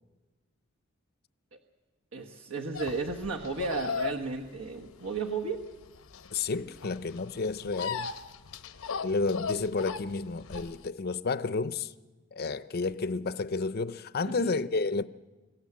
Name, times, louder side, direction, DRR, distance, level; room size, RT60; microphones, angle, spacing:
voice 1, 2.1-5.6 14.4-14.5, right 4 dB, 80° right, 1.3 m, -34 dB
sound 1, 2.7-10.9, left 5 dB, 80° left, 0.8 m, -37 dB
voice 2, 6.3-8.1 9.0-11.9 12.3-15.0, left 4 dB, 50° left, 0.6 m, -31 dB
24.0 x 14.5 x 8.6 m
head